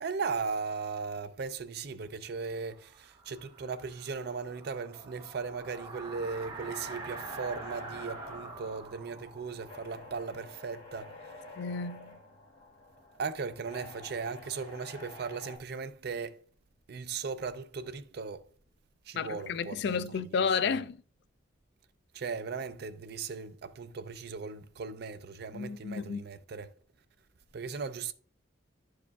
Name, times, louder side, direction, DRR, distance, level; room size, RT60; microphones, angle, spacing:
voice 1, 0.0-11.1 13.2-16.4 16.9-18.5 19.1-20.0 20.7-20.8 22.1-26.7 27.5-28.1, right 5 dB, 55° right, 0.5 m, -37 dB
sound 1, 2.5-11.3, right 3 dB, 25° right, 0.8 m, -46 dB
sound 2, 6.6-15.6, left 2 dB, 30° left, 1.4 m, -50 dB
voice 2, 11.6-12.2 19.1-21.0 25.5-26.2, left 5 dB, 60° left, 0.3 m, -32 dB
11.0 x 4.8 x 2.3 m
head